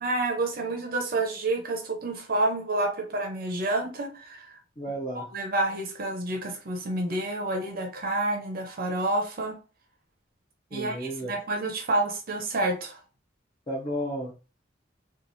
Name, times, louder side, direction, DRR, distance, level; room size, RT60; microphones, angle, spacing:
voice 1, 0.0-4.6 5.1-9.6 10.7-13.0, right 2 dB, 50° right, 0.6 m, -29 dB
voice 2, 4.8-5.3 10.7-11.3 13.7-14.3, equal, 25° left, 0.7 m, -32 dB
3.0 x 2.3 x 2.6 m
head